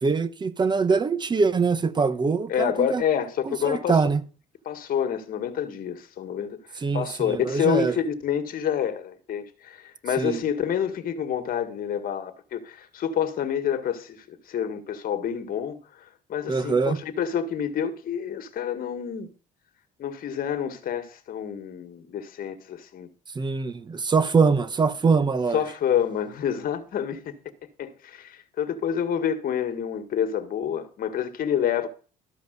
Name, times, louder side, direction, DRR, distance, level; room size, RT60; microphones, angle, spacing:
voice 1, 0.0-3.0 3.5-4.2 6.8-8.0 10.2-10.4 16.5-17.0 23.3-25.6, right 4 dB, 25° right, 1.0 m, -23 dB
voice 2, 2.5-4.0 4.7-6.6 6.9-15.8 16.3-19.3 20.0-23.1 25.5-27.4 27.8-31.9, left 9 dB, 60° left, 1.8 m, -28 dB
13.5 x 5.3 x 8.1 m
cardioid pair, 110°, 17 cm